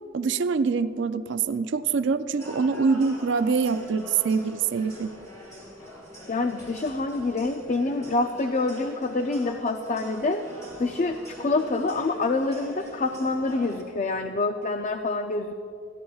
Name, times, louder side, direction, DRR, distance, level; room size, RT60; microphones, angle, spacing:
voice 1, 0.1-5.2, right 5 dB, 60° right, 11 dB, 0.4 m, -25 dB
sound 1, 2.4-13.8, equal, 15° left, 3.1 m, -44 dB
voice 2, 6.3-10.4 10.8-15.5, left 3 dB, 35° left, 7 dB, 0.4 m, -26 dB
21.0 x 14.5 x 2.4 m, 2.6 s
head